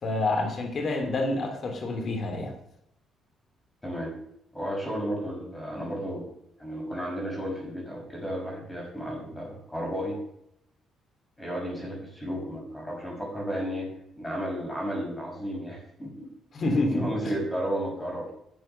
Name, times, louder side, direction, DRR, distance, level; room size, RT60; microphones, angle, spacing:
voice 1, 0.0-2.5 16.5-17.1, left 2 dB, 45° left, 4 dB, 3.3 m, -27 dB
voice 2, 4.5-6.3 6.6-10.2 11.4-13.9 14.1-16.3 16.9-18.3, equal, 10° left, -1 dB, 5.8 m, -33 dB
11.5 x 7.5 x 6.8 m, 0.76 s
cardioid pair, 100°, 0 cm